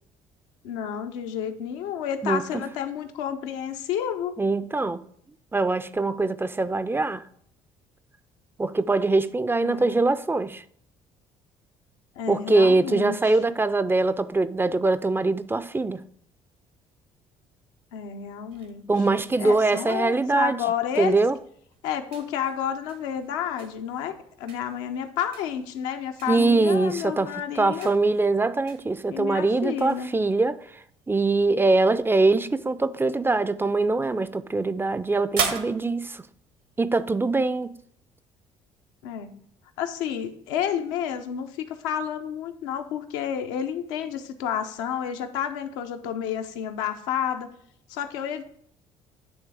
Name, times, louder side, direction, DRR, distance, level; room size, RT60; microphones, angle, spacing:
voice 1, 0.6-4.3 9.6-9.9 12.2-13.4 17.9-18.9 19.4-21.2 21.8-27.9 29.1-30.1 39.0-39.3 39.8-47.5 47.9-48.4, left 9 dB, 80° left, 0.7 m, -30 dB
voice 2, 2.2-2.6 4.4-5.0 5.5-7.2 8.6-10.6 12.3-16.0 18.9-20.6 21.0-21.4 26.3-30.8 31.1-36.2 36.8-37.8, right 3 dB, 15° right, 0.4 m, -23 dB
sound 1, 18.5-37.3, right 6 dB, 70° right, 1.1 m, -41 dB
9.2 x 3.3 x 4.8 m
hypercardioid pair, 60°, 15 cm